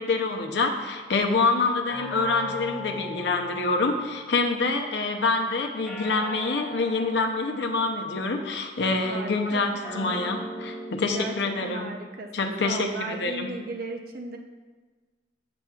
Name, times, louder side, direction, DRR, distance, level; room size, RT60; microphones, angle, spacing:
voice 1, 0.0-11.9 12.3-13.5, left 3 dB, 75° left, 3 dB, 0.6 m, -26 dB
sound 1, 1.9-4.5 5.8-8.4 9.8-12.4, left 1 dB, 5° left, 1.2 m, -39 dB
voice 2, 8.8-10.3 11.1-11.3 11.6-14.4, right 3 dB, 55° right, 3 dB, 0.6 m, -37 dB
7.8 x 5.9 x 2.4 m, 1.4 s
head